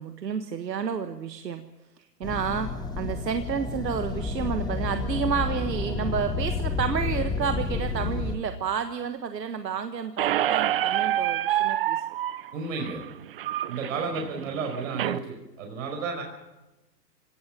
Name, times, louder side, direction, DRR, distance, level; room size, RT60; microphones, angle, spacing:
voice 1, 0.0-1.7 2.2-12.0 14.4-14.5, right 7 dB, 75° right, 8 dB, 1.7 m, -30 dB
sound 1, 2.2-8.4, left 4 dB, 10° left, 1.1 m, -30 dB
Squeak, 10.2-15.2, right 12 dB, 35° right, 0.7 m, -27 dB
voice 2, 12.5-13.0 13.7-16.2, right 4 dB, 50° right, 2 dB, 5.1 m, -32 dB
26.0 x 18.0 x 7.5 m, 1.0 s
hypercardioid pair, 135°, 50 cm